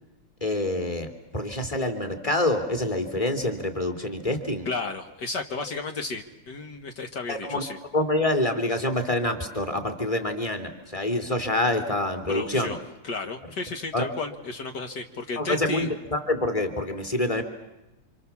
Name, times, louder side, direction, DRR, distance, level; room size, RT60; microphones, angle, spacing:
voice 1, 0.4-4.7 7.3-7.6 7.9-12.8 13.9-14.1 15.4-17.4, left 1 dB, 15° left, 5 dB, 2.9 m, -26 dB
voice 2, 4.7-7.8 12.3-12.8 13.0-15.9, left 3 dB, 65° left, 5 dB, 2.1 m, -33 dB
28.5 x 26.5 x 7.2 m, 0.95 s
omnidirectional pair, 2.1 m